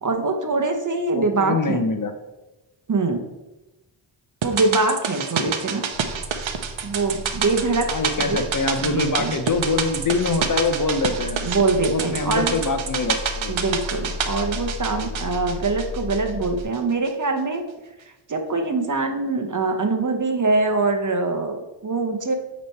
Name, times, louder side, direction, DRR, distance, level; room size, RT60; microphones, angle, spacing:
voice 1, 0.0-1.8 2.9-3.2 4.4-5.8 6.8-7.9 8.2-8.4 8.8-9.3 11.4-12.6 13.5-17.6 18.3-22.4, right 3 dB, 40° right, 5 dB, 0.9 m, -23 dB
voice 2, 1.1-2.1 5.4-5.5 7.9-11.4 11.9-13.6, left 3 dB, 40° left, 7 dB, 0.7 m, -24 dB
sound 1, 4.4-16.8 17.0-17.1, right 7 dB, 70° right, 0.8 m, -28 dB
sound 2, 5.9-16.6, left 2 dB, 70° left, 1.3 m, -35 dB
8.4 x 3.2 x 4.5 m, 1.0 s
cardioid pair, 70°, 49 cm